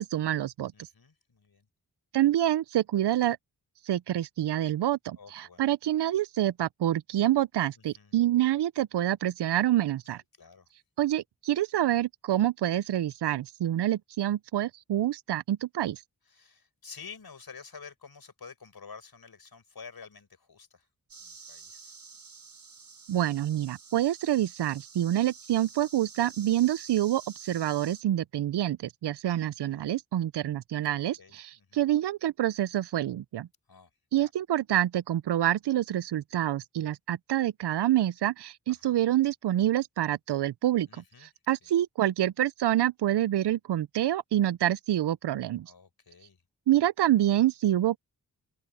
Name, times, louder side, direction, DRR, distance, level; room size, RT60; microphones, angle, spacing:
voice 1, 0.0-0.7 2.1-3.4 3.9-10.2 11.0-16.0 23.1-33.5 34.1-40.9 41.2-45.7 46.7-48.0, right 12 dB, 80° right, 0.6 m, -27 dB
voice 2, 0.7-1.7 5.2-5.7 7.8-8.2 10.1-10.7 16.2-20.9 21.2-21.9 29.3-29.9 30.9-31.9 33.7-33.9 34.2-34.3 38.7-39.0 40.9-41.3 41.6-41.7 45.6-46.4, left 5 dB, 65° left, 4.9 m, -50 dB
sound 1, 21.1-28.0, right 5 dB, 55° right, 2.4 m, -49 dB
cardioid pair, 40°, 40 cm